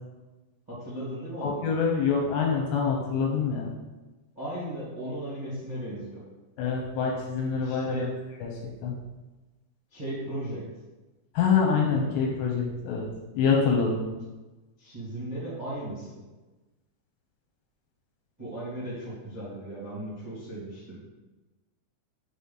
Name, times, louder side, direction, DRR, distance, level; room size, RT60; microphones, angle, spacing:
voice 1, 0.7-1.6 4.3-6.2 7.6-8.1 9.9-10.6 14.8-16.2 18.4-21.0, right 1 dB, 25° right, -10 dB, 0.8 m, -36 dB
voice 2, 1.4-3.7 6.6-8.1 8.4-8.5 8.8-8.9 11.3-13.1 13.3-14.0, left 5 dB, 75° left, -1 dB, 2.9 m, -25 dB
6.8 x 4.2 x 5.6 m, 1.2 s
omnidirectional pair, 5.6 m